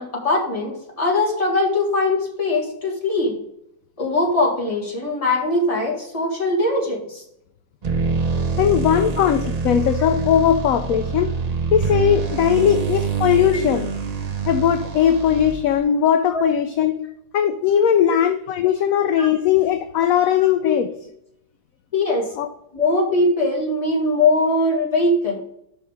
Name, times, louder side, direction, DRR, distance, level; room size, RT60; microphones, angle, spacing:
voice 1, 0.0-3.4 4.0-7.2 9.1-9.2 13.5-13.6 16.3-16.4 17.9-18.2 19.2-19.3 20.6-20.8 21.9-22.3 22.7-25.4, left 2 dB, 20° left, -2 dB, 2.0 m, -21 dB
sound 1, 7.8-15.8, right 4 dB, 45° right, 0.5 m, -25 dB
voice 2, 8.6-11.4 11.7-13.9 14.5-16.9 17.3-20.9 22.4-22.5, left 9 dB, 70° left, 8 dB, 0.9 m, -19 dB
6.4 x 5.8 x 5.0 m, 0.76 s
omnidirectional pair, 1.8 m